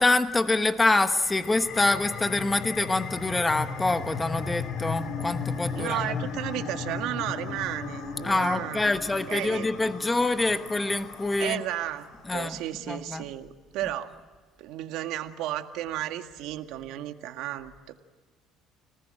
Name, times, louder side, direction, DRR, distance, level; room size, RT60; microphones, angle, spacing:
voice 1, 0.0-6.2 8.2-11.6 12.3-12.6 12.9-13.2, left 2 dB, 15° left, 9 dB, 1.1 m, -25 dB
sound 1, 1.1-12.2, left 5 dB, 55° left, 2.8 m, -36 dB
voice 2, 5.8-9.0 9.3-9.7 11.4-14.1 14.6-17.9, right 13 dB, 80° right, 6 dB, 1.8 m, -33 dB
30.0 x 19.5 x 9.0 m, 1.5 s
cardioid pair, 145°, 0 cm